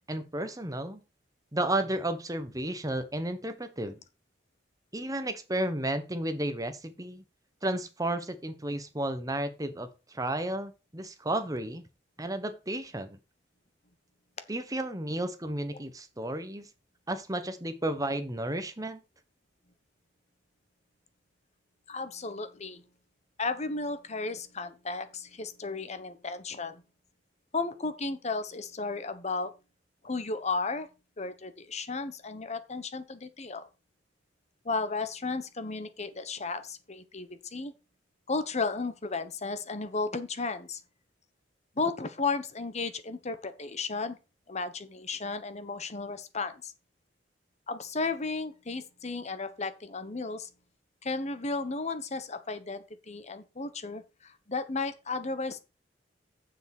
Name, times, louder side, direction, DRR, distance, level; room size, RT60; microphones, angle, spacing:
voice 1, 0.1-1.0 1.5-4.0 4.9-7.2 7.6-11.8 12.2-13.2 14.5-16.7 17.1-19.0, right 1 dB, 20° right, 1.2 m, -32 dB
voice 2, 21.9-22.8 23.4-26.8 27.5-29.5 30.0-30.9 31.2-33.7 34.6-37.7 38.3-40.8 41.8-44.2 44.5-46.7 47.7-50.5 51.0-55.6, left 3 dB, 40° left, 1.2 m, -34 dB
7.2 x 6.6 x 6.1 m
head